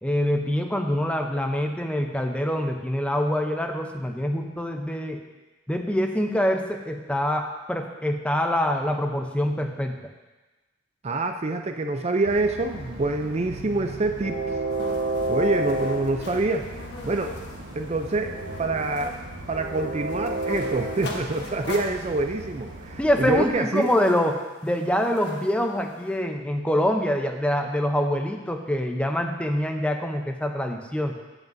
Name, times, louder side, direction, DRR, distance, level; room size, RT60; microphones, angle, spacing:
voice 1, 0.0-5.2 5.7-10.0 23.0-31.2, equal, 5° left, 4 dB, 0.7 m, -25 dB
voice 2, 11.0-14.4 15.3-16.6 17.0-17.4 17.7-18.3 18.6-19.2 19.5-23.9, right 2 dB, 35° right, 5 dB, 0.5 m, -26 dB
Train, 12.3-23.5, right 2 dB, 80° right, 1.3 m, -32 dB
sound 1, 14.7-26.2, left 2 dB, 60° left, 1.3 m, -41 dB
14.5 x 8.0 x 2.7 m, 1.2 s
head